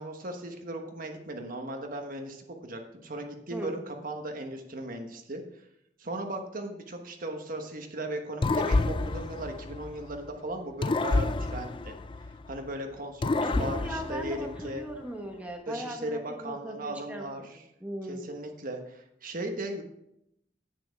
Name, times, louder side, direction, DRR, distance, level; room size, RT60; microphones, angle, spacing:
voice 1, 0.0-5.4 6.0-11.9 12.5-14.8 15.7-17.4 18.1-19.8, right 1 dB, 50° right, 4 dB, 1.3 m, -37 dB
sound 1, 8.4-10.3 10.8-12.7 13.2-14.9, left 3 dB, 30° left, 0.4 m, -29 dB
voice 2, 13.4-18.3, equal, 10° right, 1 dB, 1.2 m, -38 dB
10.5 x 8.9 x 3.5 m, 0.78 s
head